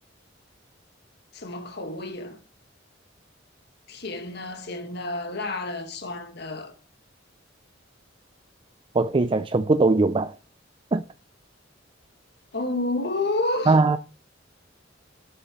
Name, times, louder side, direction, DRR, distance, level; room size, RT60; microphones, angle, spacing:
voice 1, 1.3-2.4 3.9-6.7 12.5-13.8, left 2 dB, 60° left, 1.8 m, -30 dB
voice 2, 8.9-10.3 10.9-11.0 13.7-14.0, right 3 dB, 30° right, 0.4 m, -20 dB
12.0 x 10.5 x 3.2 m
head